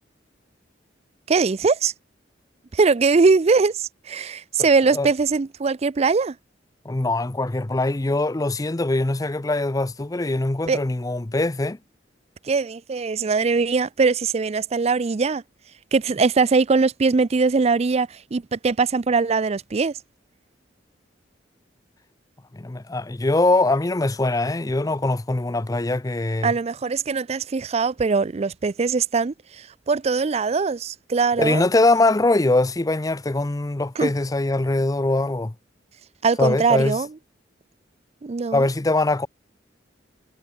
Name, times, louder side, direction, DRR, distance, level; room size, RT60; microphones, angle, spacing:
voice 1, 1.3-1.9 2.7-6.4 10.7-10.8 12.4-15.4 15.9-19.9 26.4-31.7 34.0-34.1 36.2-37.1 38.2-38.7, right 4 dB, 35° right, 0.4 m, -21 dB
voice 2, 6.8-11.8 22.5-26.5 31.4-35.5 36.4-37.0 38.5-39.3, left 2 dB, 20° left, 0.6 m, -22 dB
head